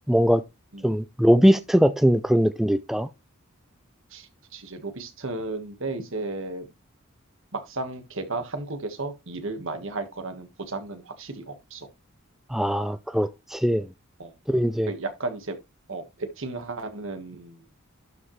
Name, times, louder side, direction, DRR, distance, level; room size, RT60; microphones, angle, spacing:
voice 1, 0.1-0.4 0.8-3.1 12.5-13.9 14.5-14.9, equal, ahead, 0.3 m, -21 dB
voice 2, 4.1-6.7 7.5-11.9 14.2-14.3 14.8-15.6 15.9-17.7, right 3 dB, 60° right, 1.5 m, -34 dB
12.0 x 5.5 x 3.2 m
head